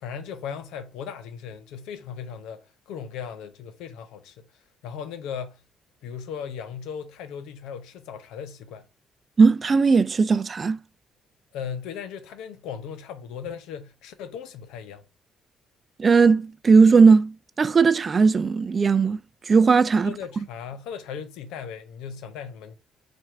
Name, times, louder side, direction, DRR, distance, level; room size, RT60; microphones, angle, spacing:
voice 1, 0.0-4.5 4.8-5.6 6.0-8.9 11.5-15.0 20.0-22.7, left 7 dB, 85° left, 0.7 m, -37 dB
voice 2, 9.4-10.8 16.0-19.2 19.5-20.1, right 5 dB, 35° right, 0.4 m, -18 dB
4.5 x 2.5 x 4.3 m
supercardioid pair, 75°, 0 cm